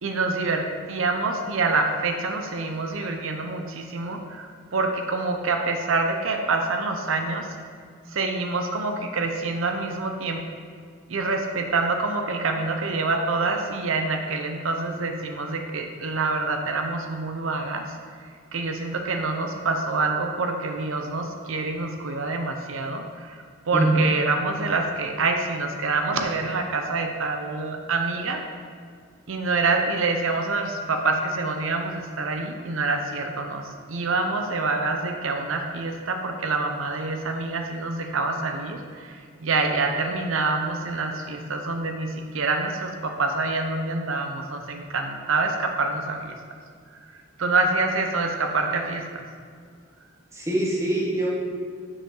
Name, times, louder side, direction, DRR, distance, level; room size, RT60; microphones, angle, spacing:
voice 1, 0.0-7.5 8.1-10.4 11.1-17.9 18.2-28.4 29.3-46.4 47.1-49.2, right 3 dB, 70° right, 4 dB, 0.7 m, -26 dB
voice 2, 23.7-24.0 50.3-51.3, right 2 dB, 15° right, -3 dB, 1.2 m, -23 dB
9.6 x 5.2 x 3.8 m, 2.1 s
head